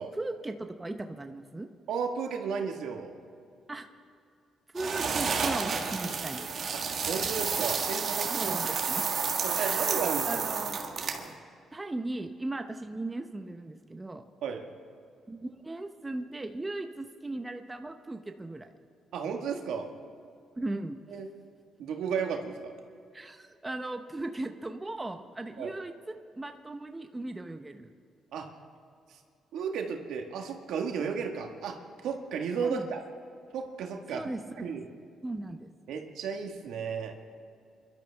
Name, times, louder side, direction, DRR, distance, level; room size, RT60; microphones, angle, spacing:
voice 1, 0.2-1.7 3.7-3.9 4.7-6.5 8.2-9.0 9.6-10.8 11.7-14.2 15.3-18.7 20.6-21.0 23.1-27.9 32.6-32.9 34.1-34.4 35.2-35.7, right 2 dB, 15° right, 6 dB, 0.8 m, -37 dB
voice 2, 1.9-3.2 6.7-8.6 9.4-10.4 14.4-14.6 19.1-19.9 21.1-21.3 21.8-22.7 25.6-25.7 28.3-28.5 29.1-29.2 29.5-31.8 32.0-33.0 33.5-34.2 34.6-34.9 35.9-37.1, right 6 dB, 80° right, 3 dB, 1.6 m, -34 dB
sound 1, 4.8-11.3, right 5 dB, 55° right, 1.7 m, -30 dB
26.5 x 12.0 x 3.5 m, 2.4 s
cardioid pair, 90°, 0 cm